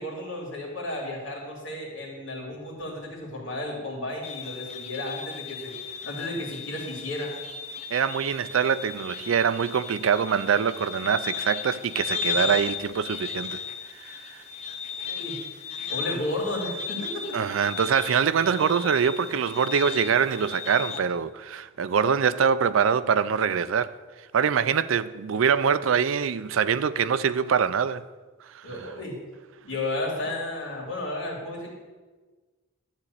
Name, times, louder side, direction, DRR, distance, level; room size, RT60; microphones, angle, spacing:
voice 1, 0.0-5.7 6.0-7.4 15.0-15.6 15.9-17.3 28.6-29.2 29.6-31.7, left 1 dB, 70° left, 3.0 m, -33 dB
sound 1, 4.2-21.0, left 7 dB, 30° left, 0.5 m, -36 dB
voice 2, 7.9-13.6 14.0-14.4 17.3-23.9 24.3-28.0 28.5-28.8, right 7 dB, 85° right, 0.4 m, -24 dB
12.5 x 4.2 x 8.1 m
head